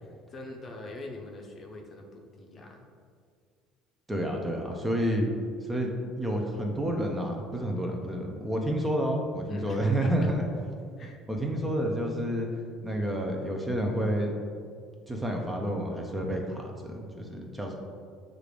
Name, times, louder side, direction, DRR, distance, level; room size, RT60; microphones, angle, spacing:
voice 1, 0.0-2.9 9.5-10.1 11.0-11.2, left 2 dB, 35° left, 1 dB, 0.6 m, -44 dB
voice 2, 4.1-5.3 5.6-10.4 11.3-12.5 12.8-14.3 15.1-17.7, right 1 dB, 10° right, 1 dB, 0.5 m, -29 dB
6.4 x 2.5 x 3.3 m, 2.2 s
cardioid pair, 110°, 0 cm